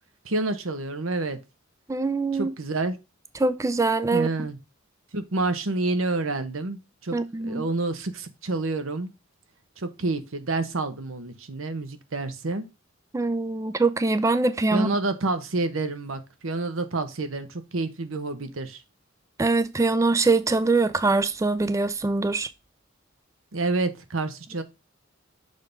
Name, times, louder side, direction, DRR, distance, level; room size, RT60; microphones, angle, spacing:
voice 1, 0.2-1.4 2.3-3.0 4.1-4.6 5.1-7.2 7.4-9.1 9.8-12.6 14.7-18.8 23.5-24.6, right 2 dB, 85° right, 1.0 m, -28 dB
voice 2, 1.9-2.5 3.4-4.3 7.1-7.6 13.1-14.9 19.4-22.5, right 3 dB, 15° right, 0.3 m, -23 dB
6.6 x 3.6 x 5.1 m
head